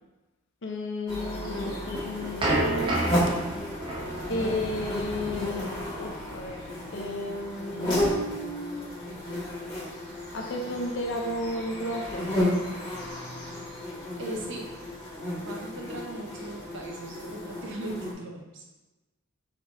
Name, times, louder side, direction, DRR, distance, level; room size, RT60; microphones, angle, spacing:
voice 1, 0.6-2.9 4.3-5.7 6.0-8.9 9.9-10.0 10.3-12.3, left 1 dB, 55° left, 1 dB, 0.5 m, -33 dB
sound 1, 1.1-18.1, left 1 dB, 25° left, 1.3 m, -33 dB
sound 2, 1.6-6.6, right 1 dB, 20° right, 0.7 m, -31 dB
voice 2, 14.2-14.7 15.4-18.7, right 1 dB, 60° right, 0 dB, 0.7 m, -38 dB
4.3 x 4.1 x 2.9 m, 1.1 s
head